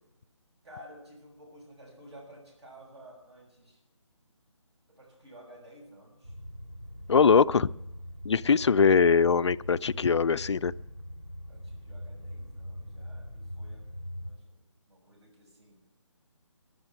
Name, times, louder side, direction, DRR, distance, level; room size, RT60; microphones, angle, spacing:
voice 1, 0.6-3.8 4.9-6.3 7.0-7.8 8.4-9.1 11.5-13.8 14.1-15.8, equal, 55° right, -1 dB, 6.5 m, -53 dB
sound 1, 6.2-14.3, equal, 80° right, 6.6 m, -42 dB
voice 2, 7.1-7.7 8.2-10.7, left 5 dB, 60° left, 15 dB, 0.4 m, -22 dB
10.5 x 9.9 x 9.0 m, 0.89 s
hypercardioid pair, 175°, 17 cm